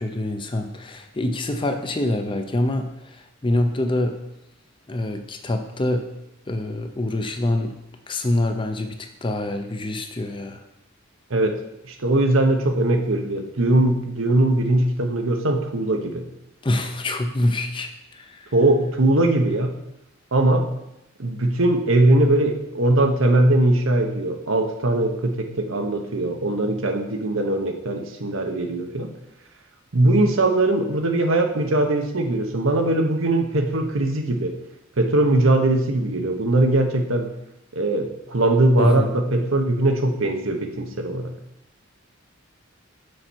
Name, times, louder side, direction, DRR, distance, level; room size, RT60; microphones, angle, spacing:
voice 1, 0.0-4.2 4.9-6.1 6.5-7.7 8.1-10.6 16.6-18.5 38.8-39.2, left 1 dB, 25° left, 6 dB, 0.6 m, -25 dB
voice 2, 11.8-16.2 18.5-19.7 20.3-20.7 21.2-29.1 29.9-34.5 35.0-37.3 37.7-41.3, right 2 dB, 75° right, 4 dB, 1.0 m, -20 dB
6.5 x 4.2 x 6.2 m, 0.85 s
head